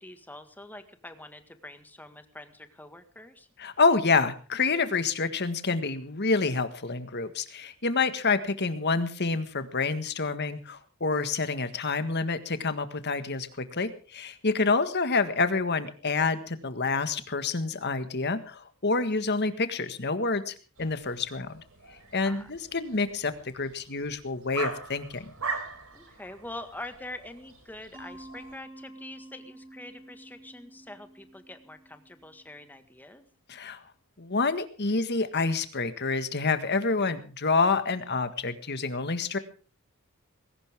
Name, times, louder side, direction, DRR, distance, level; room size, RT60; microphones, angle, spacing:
voice 1, 0.0-3.5 22.2-22.5 25.9-33.2, left 1 dB, 10° left, 8 dB, 1.7 m, -45 dB
voice 2, 3.6-21.6 22.1-25.3 33.5-33.8 34.2-39.4, left 4 dB, 50° left, 10 dB, 1.7 m, -28 dB
sound 1, 20.8-28.6, right 3 dB, 85° right, 4.4 m, -41 dB
Mallet percussion, 27.9-32.7, right 1 dB, 20° right, 4.1 m, -49 dB
20.0 x 17.5 x 3.6 m, 0.37 s
head